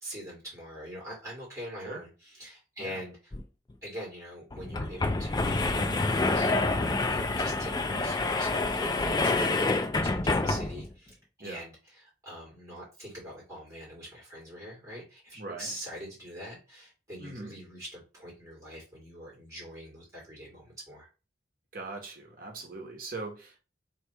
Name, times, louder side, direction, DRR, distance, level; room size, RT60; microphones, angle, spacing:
voice 1, 0.0-3.2 3.8-5.5 6.3-9.6 10.0-21.1, equal, 20° right, 2.1 m, -43 dB
sound 1, 3.3-3.4 3.7-3.8 4.5-10.9, left 2 dB, 25° left, 0.4 m, -27 dB
voice 2, 7.8-8.1 9.3-9.6 10.4-10.6 11.4-11.6 15.3-15.7 17.2-17.6 21.7-23.6, right 3 dB, 50° right, 1.2 m, -41 dB
3.3 x 2.9 x 4.6 m
head